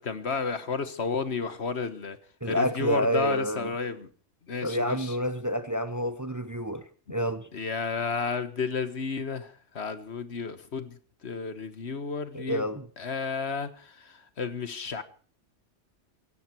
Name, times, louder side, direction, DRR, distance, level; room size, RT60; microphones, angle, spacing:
voice 1, 0.0-2.2 2.4-4.1 4.5-5.2 7.5-12.7 13.0-15.0, left 5 dB, 65° left, 1.6 m, -32 dB
voice 2, 2.4-3.7 4.6-7.5 12.3-12.9, equal, 15° right, 0.9 m, -29 dB
17.5 x 16.0 x 4.6 m
omnidirectional pair, 1.2 m